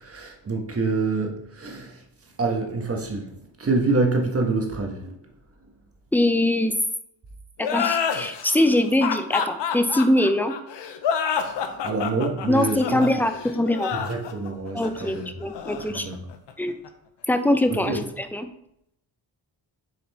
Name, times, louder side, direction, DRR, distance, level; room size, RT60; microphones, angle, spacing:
voice 1, 0.0-2.0 2.4-5.3 11.5-13.0 13.9-15.3 15.9-16.2 17.7-18.0, right 3 dB, 30° right, 1.4 m, -27 dB
voice 2, 6.1-6.7 7.6-10.6 12.5-13.9 14.7-16.1 16.6-16.8 17.3-18.5, left 1 dB, 5° left, 0.6 m, -22 dB
sound 1, 7.6-16.9, left 7 dB, 70° left, 0.9 m, -28 dB
6.7 x 4.3 x 4.3 m
cardioid pair, 90°, 44 cm